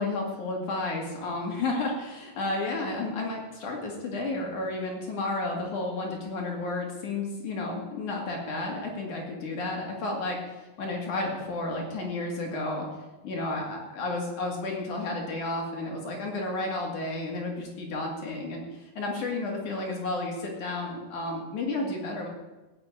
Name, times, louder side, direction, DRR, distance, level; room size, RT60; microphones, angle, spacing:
voice 1, 0.0-12.9 13.2-22.3, left 2 dB, 50° left, 0 dB, 3.3 m, -32 dB
17.0 x 7.8 x 9.0 m, 1.1 s
omnidirectional pair, 5.3 m